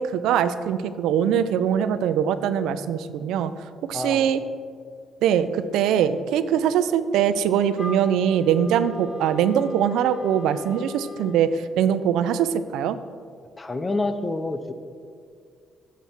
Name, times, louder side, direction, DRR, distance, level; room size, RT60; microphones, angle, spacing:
voice 1, 0.0-3.5 3.9-4.4 5.2-13.0, right 9 dB, 90° right, 13 dB, 0.4 m, -22 dB
voice 2, 3.9-4.3 13.6-14.7, left 2 dB, 20° left, 10 dB, 0.6 m, -27 dB
Wind instrument woodwind instrument, 7.8-11.4, left 3 dB, 40° left, 1.0 m, -39 dB
8.2 x 7.4 x 4.4 m, 2.1 s
cardioid pair, 100°, 0 cm